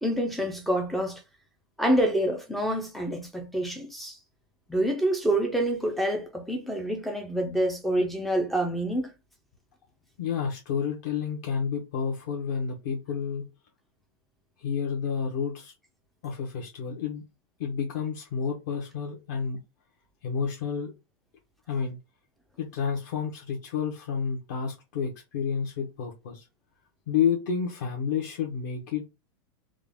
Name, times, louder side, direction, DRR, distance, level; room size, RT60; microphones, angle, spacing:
voice 1, 0.0-1.2 1.8-4.2 4.7-9.1, right 1 dB, ahead, 0.4 m, -27 dB
voice 2, 10.2-13.5 14.6-15.7 16.2-17.2 17.6-19.6 20.2-20.9 21.7-22.0 22.6-26.5 27.1-29.0, left 6 dB, 40° left, 0.8 m, -30 dB
3.7 x 2.2 x 3.4 m
supercardioid pair, 180°, 14 cm